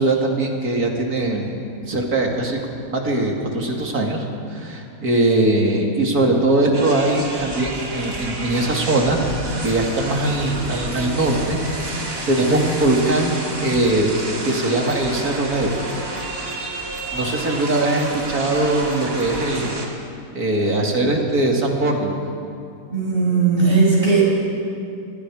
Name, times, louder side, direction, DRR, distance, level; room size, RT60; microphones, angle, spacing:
voice 1, 0.0-1.6 1.9-2.6 2.9-9.2 9.6-11.9 12.3-14.1 14.4-15.7 17.1-19.7 20.3-22.2, right 2 dB, 80° right, 0 dB, 3.2 m, -21 dB
sound 1, 6.7-19.9, right 2 dB, 65° right, 3.0 m, -30 dB
voice 2, 22.9-24.2, right 4 dB, 35° right, -5 dB, 7.0 m, -17 dB
27.5 x 21.5 x 5.0 m, 2.5 s
omnidirectional pair, 1.5 m